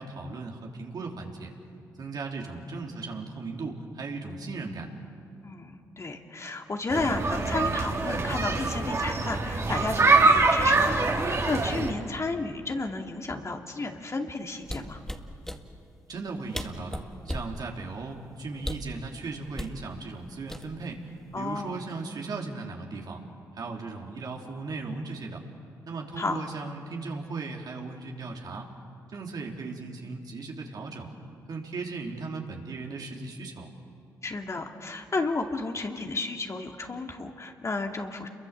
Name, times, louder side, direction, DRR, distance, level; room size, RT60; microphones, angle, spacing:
voice 1, 0.0-1.5 2.0-4.9 16.1-21.0 21.3-23.2 23.5-25.4 25.8-28.7 29.1-31.1 31.5-33.7, right 3 dB, 60° right, 1 dB, 3.5 m, -37 dB
voice 2, 5.4-15.0 21.3-21.8 26.2-26.4 34.2-38.3, left 3 dB, 40° left, 3 dB, 2.5 m, -32 dB
sound 1, 6.9-11.9, right 3 dB, 40° right, 3.3 m, -24 dB
sound 2, 14.6-15.6 16.3-16.4 16.5-17.6 18.6-19.0 19.6-19.8 20.5-21.0 21.3-21.6, equal, 5° left, 2.0 m, -35 dB
28.5 x 22.5 x 7.5 m, 2.6 s
supercardioid pair, 50°, 8 cm